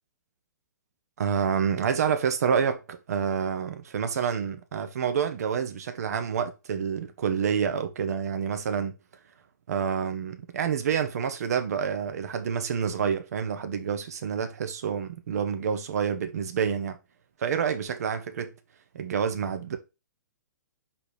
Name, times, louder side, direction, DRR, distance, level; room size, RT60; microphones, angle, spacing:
voice 1, 1.2-8.9 9.7-17.0 17.4-18.5 18.9-19.8, right 7 dB, 60° right, 1.2 m, -28 dB
5.3 x 5.0 x 5.0 m
figure-of-eight pair, 120°, 10 cm